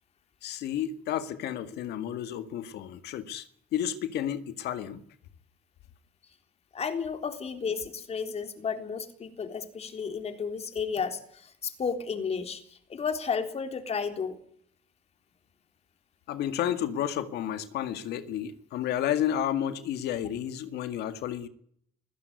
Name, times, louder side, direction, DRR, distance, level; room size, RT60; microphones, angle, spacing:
voice 1, 0.4-5.0 16.3-21.5, left 10 dB, 75° left, 2.0 m, -31 dB
voice 2, 6.7-14.4, left 6 dB, 40° left, 3.7 m, -33 dB
21.0 x 16.0 x 9.7 m
cardioid pair, 110°, 17 cm